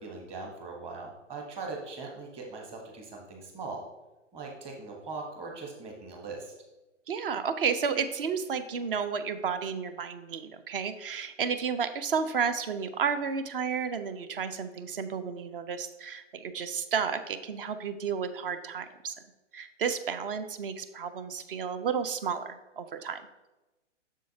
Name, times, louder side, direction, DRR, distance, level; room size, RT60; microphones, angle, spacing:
voice 1, 0.0-3.8 4.3-6.5, right 3 dB, 15° right, 1 dB, 1.0 m, -40 dB
voice 2, 7.1-19.1 19.5-23.2, right 6 dB, 50° right, 11 dB, 0.7 m, -32 dB
7.4 x 6.6 x 2.8 m, 1.1 s
hypercardioid pair, 145°, 37 cm